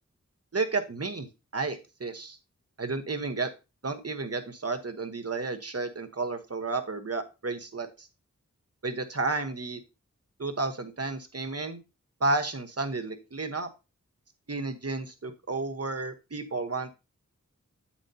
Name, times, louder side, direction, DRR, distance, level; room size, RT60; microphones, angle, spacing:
voice 1, 0.5-1.3 1.5-2.4 2.8-3.5 3.8-8.1 8.8-9.8 10.4-11.8 12.2-13.7 14.5-16.9, right 3 dB, 50° right, 8 dB, 1.1 m, -32 dB
8.1 x 7.2 x 2.8 m, 0.27 s
wide cardioid pair, 45°, 30 cm